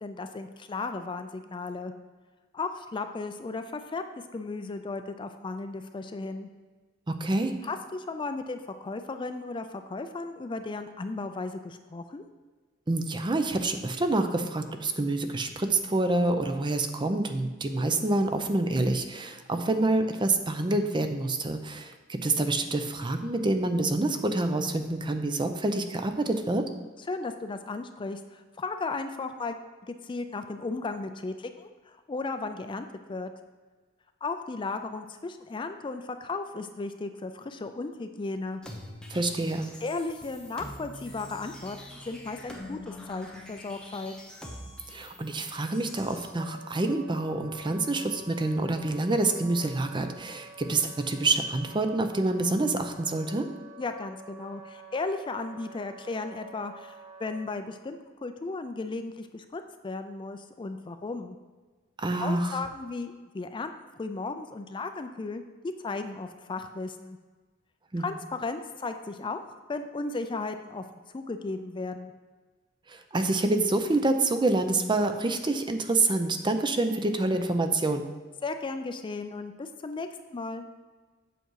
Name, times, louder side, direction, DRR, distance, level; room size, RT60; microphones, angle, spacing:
voice 1, 0.0-1.9 2.5-4.0 4.3-6.5 7.6-12.2 27.1-29.6 29.9-33.3 34.2-38.6 39.8-44.1 53.8-61.4 62.2-63.7 64.0-65.4 65.8-67.2 68.0-70.8 71.1-72.1 78.4-80.6, left 3 dB, 25° left, 8 dB, 0.4 m, -35 dB
voice 2, 7.1-7.6 12.9-26.7 39.1-39.7 44.9-53.5 62.0-62.6 67.9-68.0 72.9-78.1, right 2 dB, 25° right, 7 dB, 0.6 m, -27 dB
sound 1, 38.6-46.3, left 1 dB, 5° left, 0.9 m, -45 dB
Wind instrument woodwind instrument, 45.9-57.5, right 2 dB, 85° right, 1.9 m, -48 dB
8.0 x 6.0 x 4.7 m, 1.3 s
head